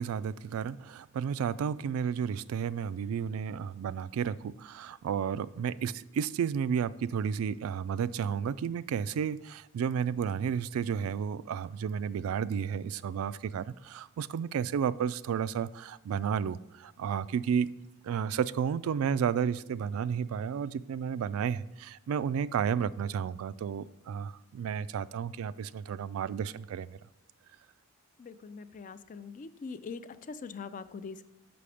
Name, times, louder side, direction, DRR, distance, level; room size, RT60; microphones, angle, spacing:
voice 1, 0.0-17.7 18.0-27.0, right 7 dB, 90° right, 0.3 m, -32 dB
voice 2, 28.2-31.2, left 5 dB, 40° left, 0.4 m, -42 dB
6.9 x 5.9 x 4.9 m
head